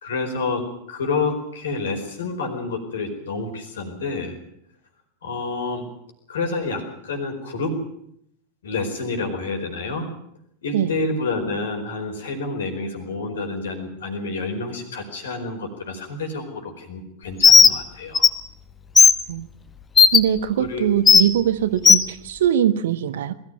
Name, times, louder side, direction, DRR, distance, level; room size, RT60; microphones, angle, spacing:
voice 1, 0.0-4.4 5.2-5.8 6.3-7.8 8.6-10.1 10.6-18.3 20.6-20.9, left 3 dB, 65° left, 5 dB, 4.7 m, -28 dB
Bird, 17.4-17.7 18.2-18.3 19.0-19.1 20.0-20.2 21.1-21.2 21.9-22.0, left 5 dB, 20° left, 1.0 m, -11 dB
voice 2, 20.1-23.3, right 10 dB, 60° right, 12 dB, 1.3 m, -22 dB
21.5 x 14.5 x 9.4 m, 0.73 s
figure-of-eight pair, 90°, 0 cm